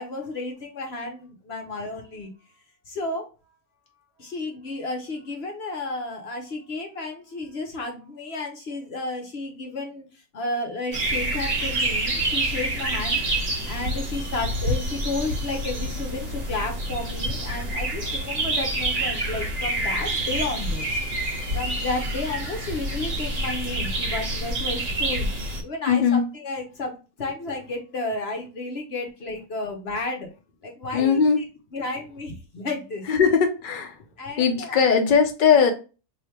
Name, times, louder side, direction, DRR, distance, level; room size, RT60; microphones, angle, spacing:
voice 1, 0.0-2.3 2.9-3.3 4.2-13.3 13.7-21.0 21.5-25.3 25.6-30.3 30.6-31.4 31.7-33.0 34.2-34.8, left 2 dB, 55° left, 2 dB, 0.8 m, -32 dB
sound 1, 10.9-25.6, right 1 dB, 35° right, 1.1 m, -27 dB
voice 2, 25.9-26.2 30.9-31.4 33.1-34.0 34.4-35.7, left 6 dB, 85° left, 5 dB, 0.4 m, -19 dB
3.3 x 2.7 x 4.3 m, 0.32 s
omnidirectional pair, 1.6 m